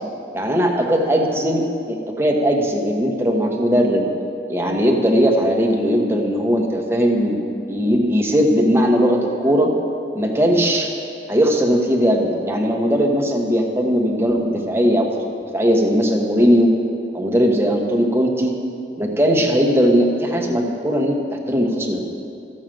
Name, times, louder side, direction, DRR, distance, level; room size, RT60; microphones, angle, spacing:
voice 1, 0.3-4.0 4.5-7.4 7.7-9.7 10.1-10.9 11.3-15.2 15.5-16.7 17.1-18.6 19.0-22.0, equal, 15° right, 1 dB, 1.1 m, -18 dB
13.5 x 6.5 x 7.6 m, 2.6 s
head